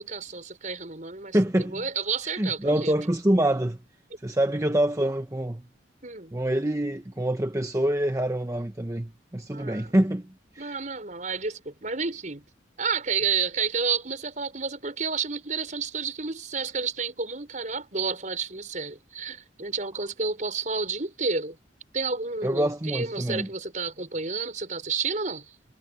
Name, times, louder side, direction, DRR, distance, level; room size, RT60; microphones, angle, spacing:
voice 1, 0.0-2.9 6.0-6.3 9.5-9.9 10.6-12.4 12.8-21.6 21.9-25.5, right 5 dB, 45° right, 5.5 m, -30 dB
voice 2, 1.3-1.8 2.4-3.8 4.2-5.6 6.3-10.3 10.5-10.8 22.4-23.5, right 1 dB, 15° right, 0.9 m, -25 dB
head